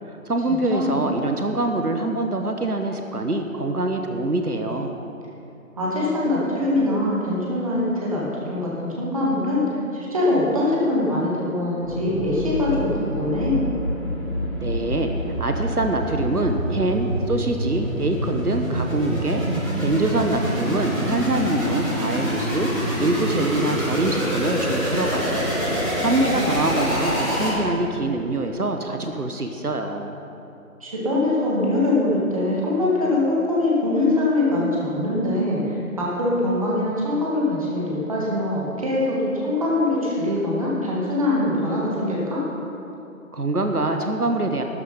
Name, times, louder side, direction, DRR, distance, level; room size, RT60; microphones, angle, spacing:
voice 1, 0.1-4.9 14.6-15.1 15.4-19.4 19.8-22.7 23.0-25.5 25.8-30.1 43.3-44.6, right 2 dB, 80° right, 4 dB, 1.3 m, -24 dB
voice 2, 5.8-8.2 8.5-9.6 9.9-13.6 26.3-26.5 30.8-42.4, left 2 dB, 25° right, -5 dB, 2.1 m, -23 dB
sound 1, 11.8-27.9, equal, 5° right, 1.4 m, -26 dB
12.5 x 11.0 x 5.7 m, 2.8 s
figure-of-eight pair, 160°, 45 cm